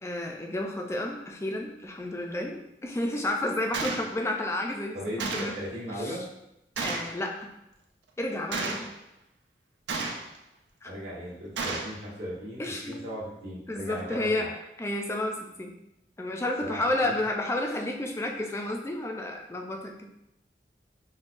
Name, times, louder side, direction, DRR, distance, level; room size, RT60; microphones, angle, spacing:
voice 1, 0.0-5.5 5.9-6.1 6.8-7.5 8.2-8.9 10.8-10.9 12.6-13.0 13.7-14.5 14.8-15.7 16.2-20.1, left 1 dB, 15° left, 2 dB, 0.3 m, -31 dB
Gunshot gunfire, 3.7-4.1 5.2-5.6 6.8-7.1 8.5-8.9 9.9-10.4 11.6-12.0, right 3 dB, 80° right, 0.5 m, -32 dB
voice 2, 4.9-6.2 10.9-14.5 16.6-17.2, equal, 65° right, -7 dB, 1.3 m, -37 dB
5.2 x 2.2 x 2.5 m, 0.86 s
head